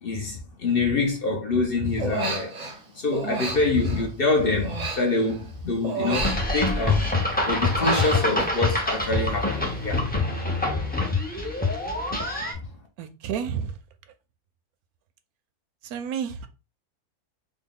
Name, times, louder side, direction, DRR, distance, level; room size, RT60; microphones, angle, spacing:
voice 1, 0.0-2.6 2.9-7.1 7.4-10.1, left 3 dB, 50° left, 0.8 m, -25 dB
Human voice, 2.0-2.8 3.1-5.5 5.8-7.1 7.4-9.3 9.5-9.9, right 3 dB, 35° right, 0.7 m, -33 dB
sound 1, 6.2-12.5, left 2 dB, 10° left, 0.4 m, -25 dB
voice 2, 13.0-13.8 15.8-16.5, right 8 dB, 80° right, 1.1 m, -30 dB
3.6 x 2.3 x 3.7 m
omnidirectional pair, 1.6 m